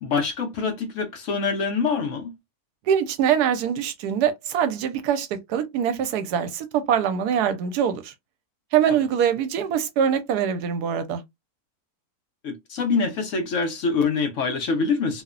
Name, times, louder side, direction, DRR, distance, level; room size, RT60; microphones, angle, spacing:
voice 1, 0.0-2.3 8.9-9.0 12.4-15.2, left 4 dB, 60° left, 0.9 m, -25 dB
voice 2, 2.9-8.1 8.7-11.2, right 8 dB, 85° right, 1.1 m, -23 dB
2.9 x 2.0 x 2.4 m
omnidirectional pair, 1.7 m